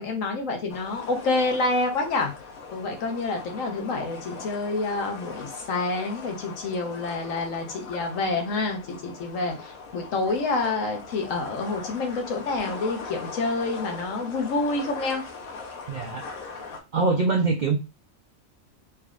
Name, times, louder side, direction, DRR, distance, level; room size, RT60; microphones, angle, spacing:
voice 1, 0.0-2.3 2.7-15.2, left 3 dB, 70° left, 3 dB, 1.2 m, -28 dB
sound 1, 0.7-16.8, left 4 dB, 90° left, 1.2 m, -40 dB
voice 2, 15.9-16.3 16.9-17.8, right 4 dB, 85° right, 3 dB, 0.4 m, -23 dB
3.4 x 3.2 x 2.4 m, 0.28 s
omnidirectional pair, 1.4 m